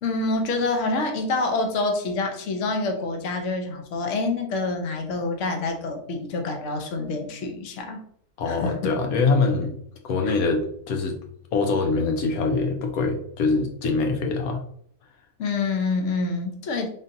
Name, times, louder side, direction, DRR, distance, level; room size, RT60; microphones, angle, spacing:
voice 1, 0.0-8.0 8.5-8.9 10.3-10.4 15.4-16.9, left 3 dB, 60° left, 3 dB, 1.0 m, -27 dB
voice 2, 8.4-9.7 10.0-11.2 11.5-14.6, left 3 dB, 75° left, 3 dB, 1.2 m, -24 dB
3.9 x 3.6 x 2.7 m, 0.65 s
omnidirectional pair, 1.6 m